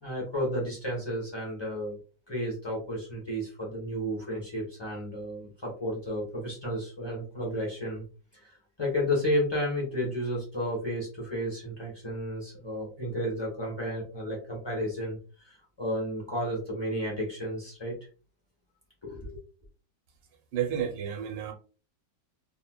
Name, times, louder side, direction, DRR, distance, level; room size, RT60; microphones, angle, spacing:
voice 1, 0.0-2.0 2.3-8.0 8.3-18.0 19.0-19.4, equal, 25° left, -4 dB, 0.5 m, -32 dB
voice 2, 20.5-21.5, right 9 dB, 80° right, 4 dB, 1.4 m, -31 dB
3.5 x 2.1 x 2.2 m, 0.36 s
omnidirectional pair, 1.9 m